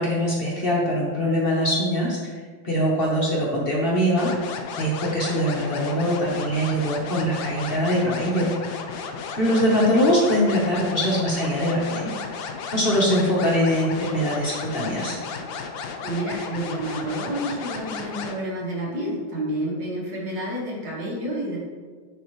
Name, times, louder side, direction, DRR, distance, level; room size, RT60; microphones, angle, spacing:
voice 1, 0.0-2.2 2.6-4.3 4.8-8.5 9.4-12.1 12.7-15.2, equal, 40° left, -4 dB, 0.9 m, -22 dB
sound 1, 4.2-18.4, left 5 dB, 80° left, 1.3 m, -34 dB
voice 2, 16.0-21.6, right 1 dB, 65° right, -5 dB, 2.3 m, -29 dB
9.8 x 3.6 x 3.1 m, 1.5 s
omnidirectional pair, 2.2 m